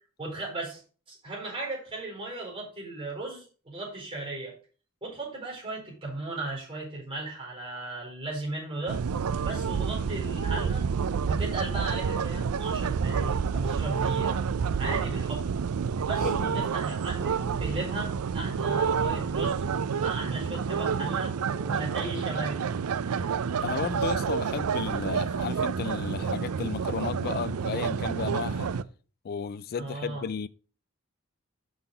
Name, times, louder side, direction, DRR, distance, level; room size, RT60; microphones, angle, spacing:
voice 1, 0.2-0.8 1.1-4.5 5.0-9.0 9.4-10.8 11.3-14.4 14.7-15.4 16.0-19.6 20.0-22.6 23.0-23.3 29.8-30.2, right 2 dB, 25° right, 4.5 m, -36 dB
sound 1, 8.9-28.8, right 6 dB, 80° right, 0.4 m, -29 dB
voice 2, 16.2-16.7 23.6-28.7 29.2-30.5, left 6 dB, 45° left, 0.4 m, -34 dB
6.3 x 5.7 x 5.4 m
head